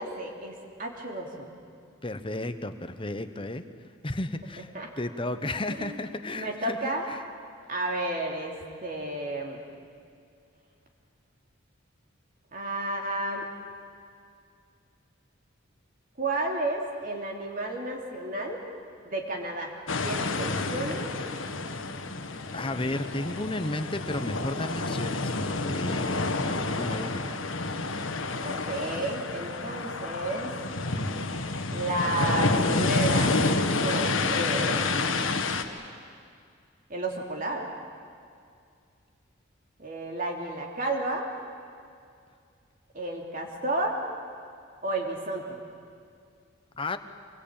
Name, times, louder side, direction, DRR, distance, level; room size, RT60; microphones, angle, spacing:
voice 1, 0.0-1.5 4.7-4.9 5.8-6.0 6.3-7.0 7.7-9.6 12.5-13.5 16.2-18.6 19.0-19.7 20.0-21.1 28.4-30.5 31.7-34.8 36.9-37.7 39.8-41.3 42.9-44.0 44.8-45.6, right 2 dB, 40° right, 1 dB, 3.1 m, -32 dB
voice 2, 2.0-3.7 4.0-4.7 5.0-7.2 22.5-27.5 46.7-47.0, left 2 dB, 25° left, 10 dB, 1.0 m, -33 dB
sound 1, 19.9-35.6, left 3 dB, 75° left, 1.6 m, -29 dB
25.5 x 21.5 x 8.9 m, 2.3 s
head